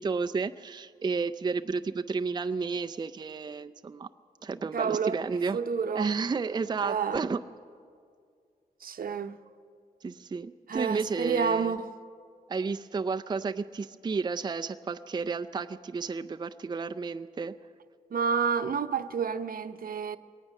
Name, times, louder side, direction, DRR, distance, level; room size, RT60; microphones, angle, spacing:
voice 1, 0.0-4.1 4.4-5.6 5.9-7.4 10.0-11.7 12.5-17.6, right 4 dB, 30° right, 0.4 m, -32 dB
voice 2, 4.7-6.2 6.8-7.2 8.8-9.4 10.7-11.9 18.1-20.2, right 6 dB, 70° right, 0.8 m, -29 dB
22.5 x 18.5 x 6.5 m
wide cardioid pair, 105°, 16 cm